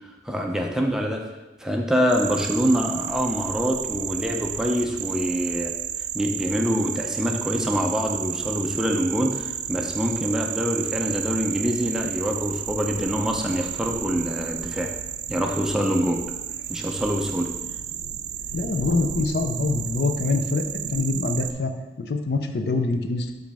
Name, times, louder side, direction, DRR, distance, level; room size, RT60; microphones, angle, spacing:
voice 1, 0.0-1.3 1.6-5.7 6.1-14.9 15.3-16.2 16.7-17.5, equal, 5° right, 1 dB, 0.5 m, -25 dB
sound 1, 2.1-21.5, right 10 dB, 85° right, 0.4 m, -32 dB
voice 2, 18.5-20.7 20.9-21.7 22.0-23.3, left 3 dB, 70° left, 6 dB, 0.5 m, -24 dB
6.3 x 5.0 x 3.4 m, 1.1 s
head